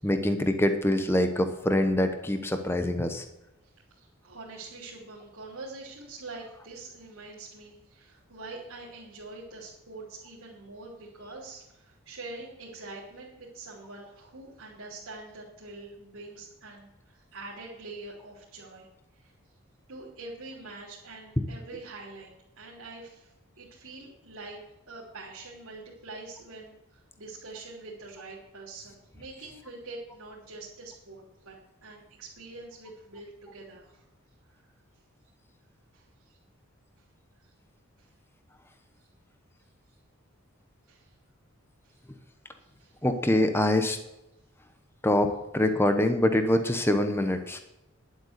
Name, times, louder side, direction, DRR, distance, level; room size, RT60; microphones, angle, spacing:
voice 1, 0.0-3.2 43.0-44.0 45.0-45.3 45.5-47.6, left 1 dB, 10° left, 7 dB, 0.8 m, -24 dB
voice 2, 3.9-18.9 19.1-19.3 19.9-22.3 22.6-24.6 24.9-34.0 35.9-36.4 38.0-38.1 40.9-41.1 41.8-41.9 42.8-42.9, right 3 dB, 70° right, -6 dB, 3.1 m, -45 dB
11.0 x 8.0 x 6.6 m, 0.90 s
head